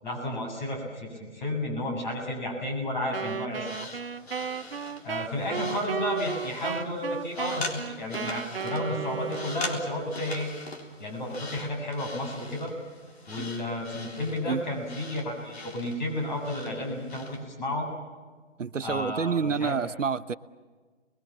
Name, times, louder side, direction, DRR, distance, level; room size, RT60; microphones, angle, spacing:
voice 1, 0.0-4.0 5.0-10.5 11.0-12.7 13.3-17.9 18.8-19.7, left 1 dB, 40° left, 1 dB, 7.4 m, -32 dB
Wind instrument woodwind instrument, 3.1-10.0, right 7 dB, 50° right, 0.9 m, -35 dB
sound 1, 3.5-17.4, left 3 dB, 55° left, 3.8 m, -42 dB
voice 2, 18.6-20.3, right 5 dB, 85° right, 14 dB, 1.0 m, -28 dB
29.0 x 21.5 x 7.5 m, 1.4 s
hypercardioid pair, 160°, 37 cm